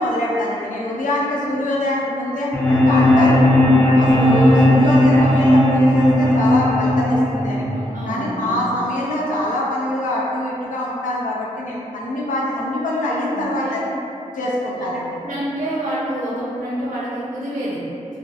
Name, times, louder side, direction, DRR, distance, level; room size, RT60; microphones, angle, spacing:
voice 1, 0.0-3.4 3.9-7.7 8.1-13.9 14.3-15.0, left 1 dB, 85° left, -5 dB, 0.5 m, -24 dB
sound 1, 2.5-8.5, left 1 dB, 15° left, 0.3 m, -15 dB
voice 2, 7.9-8.7 13.3-13.9 14.7-14.8 15.2-17.8, right 1 dB, 85° right, -8 dB, 0.7 m, -28 dB
2.4 x 2.0 x 2.6 m, 2.7 s
wide cardioid pair, 95°, 13 cm